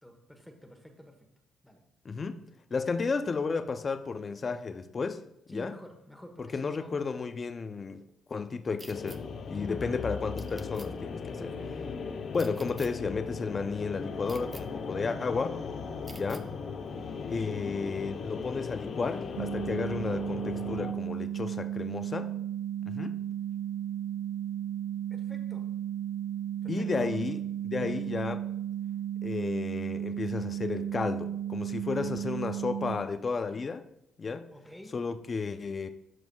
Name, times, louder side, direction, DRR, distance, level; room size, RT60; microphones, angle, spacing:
voice 1, 0.0-1.2 1.6-1.8 5.5-7.1 9.5-10.1 11.4-11.7 25.1-25.7 26.6-27.1 27.7-27.9 34.5-35.0, equal, 5° left, 1.1 m, -48 dB
voice 2, 2.0-2.4 2.7-5.2 5.5-5.7 6.5-8.0 8.3-11.5 12.3-15.6 16.1-16.5 17.3-22.3 22.9-23.2 26.7-28.5 29.2-33.8 34.2-34.5 34.9-35.9, left 4 dB, 35° left, 0.5 m, -33 dB
sound 1, 8.8-9.2 10.4-10.9 12.3-12.9 14.3-14.6 16.1-16.4, right 2 dB, 20° right, 0.6 m, -48 dB
sound 2, 8.9-20.9, left 5 dB, 60° left, 0.9 m, -38 dB
sound 3, 19.4-33.0, right 11 dB, 85° right, 0.4 m, -34 dB
12.5 x 6.2 x 2.3 m
cardioid pair, 90°, 0 cm